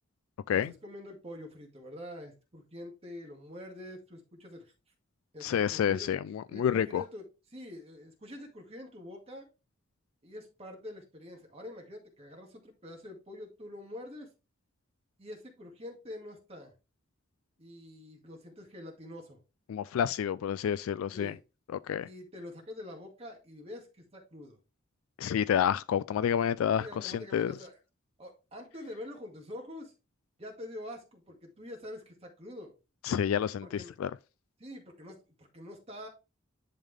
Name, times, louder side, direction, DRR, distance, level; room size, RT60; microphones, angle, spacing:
voice 1, 0.7-4.7 5.3-6.1 6.5-7.2 7.5-9.5 10.2-14.3 15.2-16.7 17.6-19.4 21.1-21.4 22.0-24.6 26.7-27.8 28.2-29.9 30.4-32.7 33.6-33.9 34.6-36.1, left 1 dB, 30° right, 2.0 m, -46 dB
voice 2, 5.4-7.0 19.7-21.4 21.7-22.1 25.2-27.6 33.0-34.1, left 8 dB, 90° left, 0.3 m, -29 dB
10.5 x 3.7 x 3.4 m
head